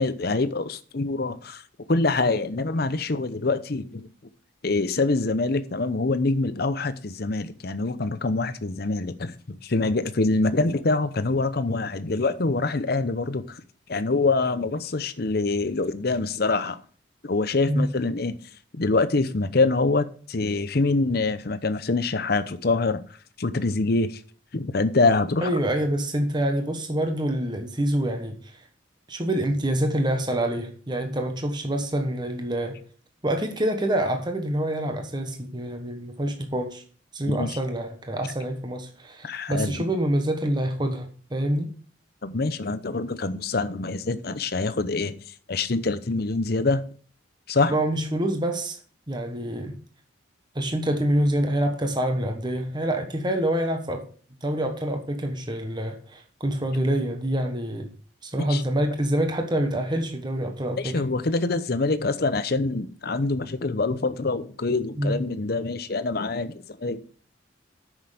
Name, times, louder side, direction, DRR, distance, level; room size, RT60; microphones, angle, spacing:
voice 1, 0.0-1.6 1.9-4.0 4.6-13.6 13.9-16.8 17.2-18.4 18.8-23.0 23.4-24.2 24.5-25.5 37.4-37.6 39.2-39.8 42.2-45.1 45.5-46.8 47.5-47.7 58.4-58.6 60.8-67.0, left 3 dB, 50° left, 0.7 m, -25 dB
voice 2, 25.4-28.4 29.1-32.8 33.2-36.8 37.1-41.7 47.7-48.8 49.1-49.8 50.5-54.0 54.4-57.9 58.2-61.0 65.0-65.2, right 1 dB, 20° right, 1.2 m, -26 dB
9.4 x 6.4 x 5.0 m
head